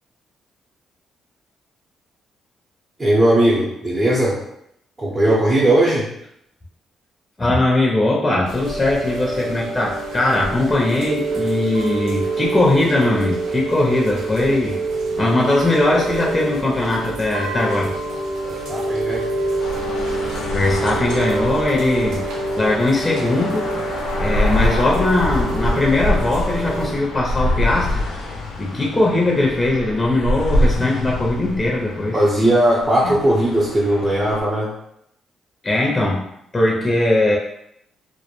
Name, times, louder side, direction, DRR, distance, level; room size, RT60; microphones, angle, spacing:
voice 1, 3.0-4.4 5.0-6.1 18.4-19.3 32.1-34.7, right 1 dB, 25° right, -7 dB, 0.6 m, -18 dB
voice 2, 7.4-14.8 15.2-17.9 20.5-22.2 22.6-23.7 24.2-28.0 28.6-32.2 33.0-33.2 35.6-36.3 36.5-37.4, left 2 dB, 20° left, -2 dB, 0.5 m, -20 dB
Chime / Rain, 8.5-26.9, right 2 dB, 90° right, 0.4 m, -26 dB
sound 1, 19.6-34.4, left 1 dB, 85° left, 0.4 m, -25 dB
2.2 x 2.1 x 3.0 m, 0.77 s
cardioid pair, 90°, 0 cm